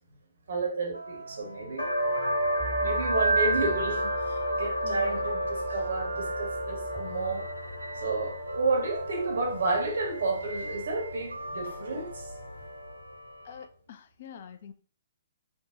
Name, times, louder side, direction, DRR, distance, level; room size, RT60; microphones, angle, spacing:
voice 1, 0.5-2.5 2.8-7.5 7.9-12.3, right 3 dB, 65° right, 0.9 m, -31 dB
sound 1, 0.9-13.7, right 3 dB, 90° right, 0.3 m, -36 dB
sound 2, 1.8-13.1, equal, 80° left, 0.9 m, -33 dB
sound 3, 2.6-11.3, right 2 dB, 5° right, 0.5 m, -45 dB
voice 2, 13.4-14.7, left 8 dB, 50° left, 0.3 m, -46 dB
2.7 x 2.1 x 3.6 m
figure-of-eight pair, 125°, 0 cm